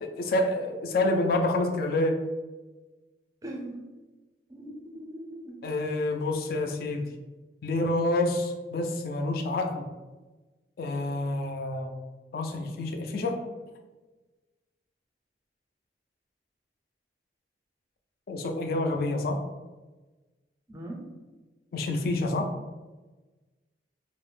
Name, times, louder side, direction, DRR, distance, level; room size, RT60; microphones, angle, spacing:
voice 1, 0.0-2.2 5.6-7.0 7.6-9.9 10.8-11.9 12.3-13.5 18.3-19.4 21.7-22.6, left 2 dB, 55° left, 4 dB, 0.3 m, -28 dB
voice 2, 3.4-3.8 4.5-5.6 20.7-21.0, right 1 dB, 20° right, 0 dB, 0.4 m, -40 dB
2.4 x 2.0 x 3.2 m, 1.2 s
head